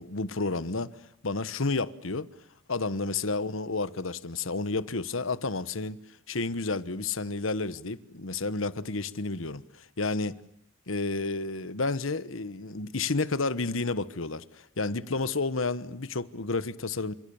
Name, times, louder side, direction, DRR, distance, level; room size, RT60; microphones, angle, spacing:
voice 1, 0.0-2.3 2.7-6.0 6.3-10.4 10.9-17.1, left 3 dB, 80° left, 1.3 m, -31 dB
29.5 x 26.5 x 7.2 m
head